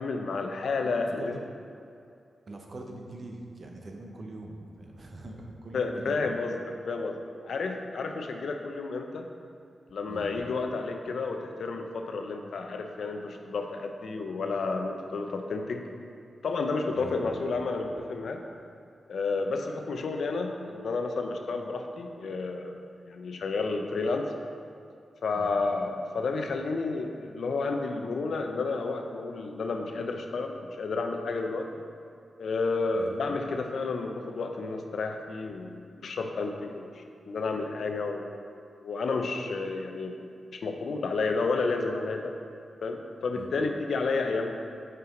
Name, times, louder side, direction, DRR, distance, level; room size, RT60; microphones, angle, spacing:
voice 1, 0.0-1.3 5.7-9.3 9.9-15.8 16.4-18.4 19.1-24.3 25.2-31.7 32.4-38.3 38.8-40.2 40.5-42.3 42.8-44.5, left 3 dB, 75° left, 4 dB, 0.5 m, -31 dB
voice 2, 0.8-1.5 2.5-6.3 10.1-10.5 16.9-17.3 25.3-25.5 33.0-33.2 43.3-43.5, right 2 dB, 55° right, 2 dB, 0.8 m, -43 dB
5.7 x 4.7 x 3.7 m, 2.5 s
cardioid pair, 65°, 0 cm